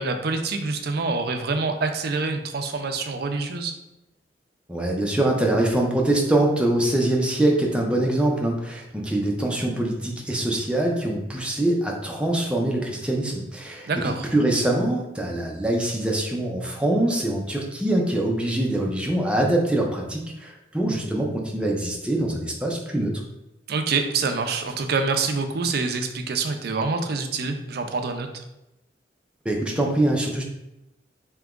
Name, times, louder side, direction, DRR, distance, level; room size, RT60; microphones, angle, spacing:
voice 1, 0.0-3.7 13.9-14.3 23.7-28.3, right 4 dB, 60° right, 6 dB, 0.5 m, -26 dB
voice 2, 4.7-23.2 29.4-30.4, right 1 dB, 5° right, -1 dB, 0.6 m, -24 dB
3.5 x 2.9 x 3.6 m, 0.92 s
head